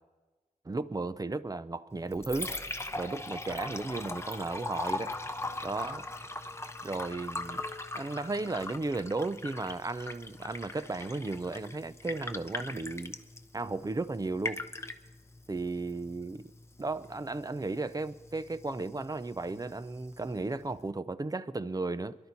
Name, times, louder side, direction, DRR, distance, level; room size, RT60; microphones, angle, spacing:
voice 1, 0.6-2.5 2.9-5.1 5.6-6.1 6.8-7.6 7.9-13.2 13.5-14.6 15.5-16.5 16.8-22.2, right 3 dB, 25° right, 0.6 m, -35 dB
Liquid, 1.9-20.9, left 2 dB, 20° left, 0.9 m, -41 dB
23.0 x 11.5 x 4.1 m
wide cardioid pair, 70°, 14 cm